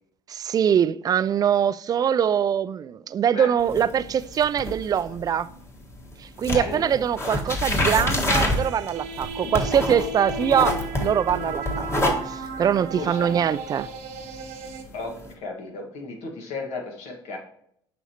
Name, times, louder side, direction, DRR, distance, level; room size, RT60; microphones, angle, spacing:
voice 1, 0.3-5.5 6.4-13.9, right 8 dB, 35° right, 0.3 m, -23 dB
sound 1, 3.6-6.1 6.4-15.3, left 1 dB, 25° left, 1.5 m, -27 dB
voice 2, 6.5-6.9 12.9-13.3 14.9-17.4, left 3 dB, 80° left, 1.6 m, -34 dB
sound 2, 8.2-14.8, right 3 dB, 85° right, 1.0 m, -36 dB
7.2 x 5.4 x 2.9 m
supercardioid pair, 85°, 11 cm